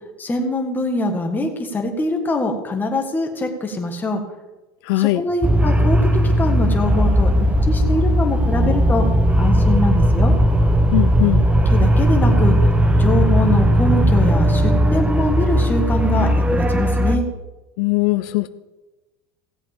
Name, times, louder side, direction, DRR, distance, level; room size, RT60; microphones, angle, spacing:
voice 1, 0.2-4.2 4.9-6.0 6.4-7.3 7.7-9.0 9.4-10.3 11.7-12.5 13.0-17.2, left 2 dB, 15° left, 3 dB, 1.5 m, -23 dB
voice 2, 4.9-5.2 10.9-11.4 17.8-18.5, left 20 dB, 75° left, 12 dB, 0.5 m, -19 dB
sound 1, 5.4-17.2, equal, 10° right, 0.6 m, -17 dB
17.0 x 8.1 x 3.5 m, 1.1 s
supercardioid pair, 140°, 12 cm